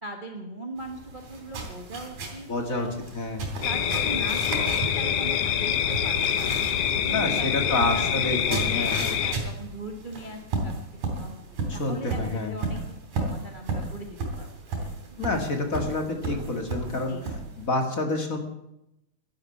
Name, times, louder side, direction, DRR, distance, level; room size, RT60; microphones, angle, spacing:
voice 1, 0.0-3.0 3.6-8.9 9.2-10.7 11.1-11.4 11.7-12.8 13.2-15.2 16.9-17.2, right 1 dB, 50° right, 3 dB, 0.5 m, -40 dB
sound 1, 0.8-17.7, right 3 dB, 85° right, 4.6 m, -35 dB
voice 2, 2.5-2.9 3.1-3.4 7.1-9.1 11.7-12.5 15.2-17.2 17.6-18.4, left 2 dB, 35° left, 4 dB, 1.8 m, -28 dB
sound 2, 3.6-9.4, left 9 dB, 65° left, 1.7 m, -25 dB
12.0 x 12.0 x 8.4 m, 0.86 s
omnidirectional pair, 3.3 m